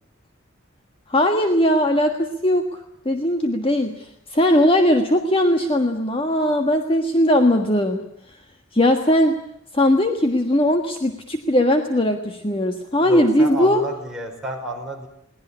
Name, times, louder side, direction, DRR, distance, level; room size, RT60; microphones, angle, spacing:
voice 1, 1.1-2.8 3.0-8.0 8.7-9.4 9.7-13.8, left 1 dB, 25° left, 5 dB, 1.5 m, -19 dB
voice 2, 13.0-15.1, equal, 5° right, 0 dB, 5.1 m, -30 dB
22.0 x 18.5 x 9.9 m, 0.77 s
head